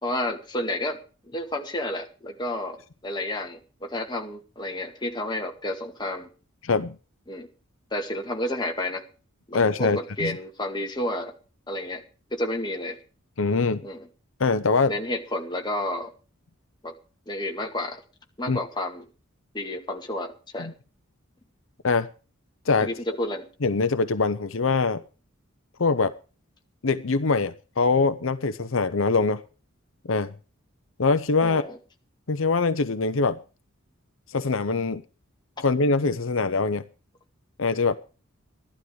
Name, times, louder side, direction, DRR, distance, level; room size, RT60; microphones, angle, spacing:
voice 1, 0.0-1.0 1.3-6.3 7.3-7.5 7.9-9.0 9.5-11.3 11.7-12.0 12.3-13.0 13.8-14.1 14.9-16.1 16.8-16.9 17.3-18.0 18.4-19.1 19.5-20.7 22.8-23.5 31.4-31.8, left 1 dB, 20° left, 2 dB, 2.2 m, -31 dB
voice 2, 6.6-7.0 9.5-10.4 13.4-13.8 14.4-14.9 18.5-18.6 20.6-20.7 21.8-22.1 22.7-22.9 23.6-25.0 25.8-26.1 26.8-29.4 30.1-30.3 31.0-31.6 32.3-33.4 34.3-35.0 35.6-36.8 37.6-38.0, left 4 dB, 75° left, 11 dB, 0.8 m, -23 dB
14.5 x 12.0 x 4.8 m, 0.36 s
head